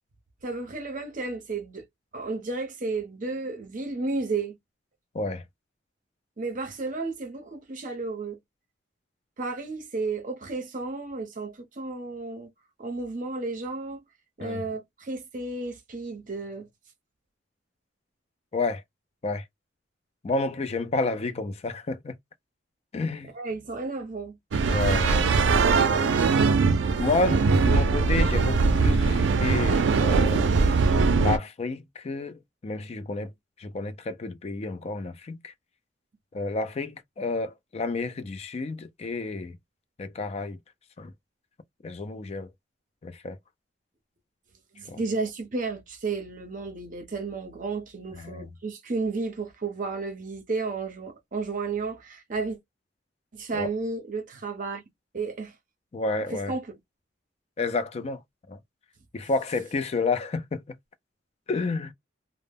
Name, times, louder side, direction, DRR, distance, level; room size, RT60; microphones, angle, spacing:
voice 1, 0.4-1.8 2.1-4.5 6.4-8.4 9.4-12.5 12.8-14.0 14.4-16.7 23.3-24.4 44.7-52.6 53.3-54.8 55.1-55.5 56.3-56.6, right 3 dB, 45° right, 0.7 m, -32 dB
voice 2, 20.2-22.1 22.9-23.3 24.7-25.5 27.0-30.6 31.2-33.3 33.6-35.5 36.3-39.6 40.0-40.6 41.0-41.1 41.8-42.5 43.0-43.4 44.9-45.0 48.1-48.5 53.5-53.7 55.9-56.5 57.6-58.2 58.5-58.6 59.1-60.6 61.5-61.9, left 3 dB, 35° left, 0.4 m, -30 dB
sound 1, 24.5-31.4, right 4 dB, 85° right, 0.4 m, -21 dB
2.1 x 2.0 x 3.4 m
head